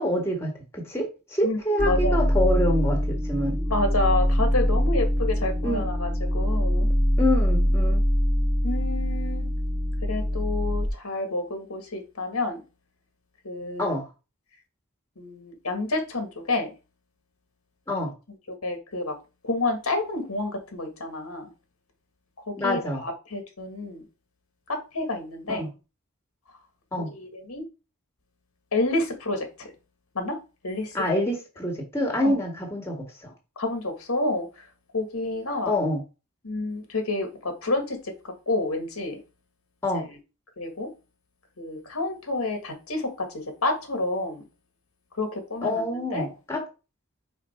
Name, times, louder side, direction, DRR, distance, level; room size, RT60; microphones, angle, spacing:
voice 1, 0.0-3.6 5.6-5.9 7.2-8.0 13.8-14.1 17.9-18.1 22.6-23.0 25.5-25.7 26.9-27.1 30.9-33.3 35.6-36.0 39.8-40.1 45.6-46.7, left 1 dB, 10° left, 1.6 m, -26 dB
sound 1, 1.8-10.9, equal, 5° right, 0.3 m, -23 dB
voice 2, 1.9-2.2 3.7-6.9 8.6-9.5 10.0-12.6 13.4-13.9 15.2-16.7 17.9-18.0 18.6-19.1 19.4-21.5 22.5-24.0 24.9-25.7 27.1-27.6 28.7-29.4 30.1-30.3 30.6-30.9 32.2-32.4 33.6-34.5 34.9-35.7 36.4-38.0 38.5-39.2 39.9-40.0 40.6-40.9 41.6-43.1 43.3-44.4 45.2-45.8 46.1-46.2, left 2 dB, 85° left, 1.8 m, -29 dB
5.2 x 4.3 x 4.4 m
head